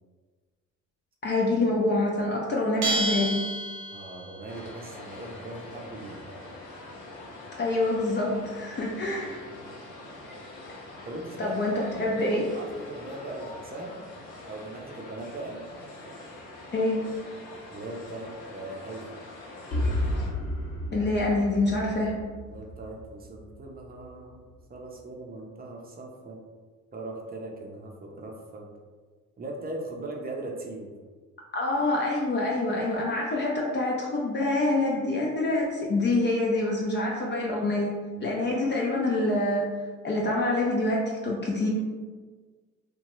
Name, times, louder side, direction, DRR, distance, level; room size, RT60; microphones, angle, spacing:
voice 1, 1.2-3.4 7.6-9.4 11.4-12.5 16.7-17.0 20.9-22.1 31.5-37.9 38.2-39.6 40.0-41.7, left 2 dB, 35° left, -3 dB, 0.5 m, -26 dB
Bell, 2.8-4.4, right 1 dB, 85° right, 0.6 m, -29 dB
voice 2, 3.9-6.2 9.5-9.6 11.0-14.0 14.5-15.6 17.7-19.2 22.5-26.4 26.9-28.7 29.4-30.9 38.2-38.3, right 2 dB, 30° right, 0 dB, 0.6 m, -40 dB
sound 1, 4.5-20.3, left 2 dB, 85° left, 0.7 m, -44 dB
sound 2, 19.7-23.6, left 1 dB, 70° left, 1.1 m, -32 dB
2.8 x 2.2 x 2.9 m, 1.5 s
cardioid pair, 90°, 30 cm